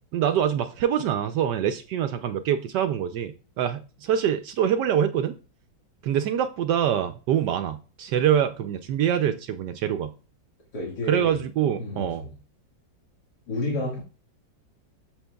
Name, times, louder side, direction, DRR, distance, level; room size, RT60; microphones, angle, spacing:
voice 1, 0.1-5.3 6.0-10.1 11.1-12.2, right 9 dB, 75° right, 9 dB, 1.1 m, -25 dB
voice 2, 10.7-11.4 11.8-12.3 13.5-14.0, left 1 dB, 60° left, -4 dB, 2.4 m, -30 dB
8.7 x 7.0 x 2.3 m, 0.35 s
omnidirectional pair, 2.0 m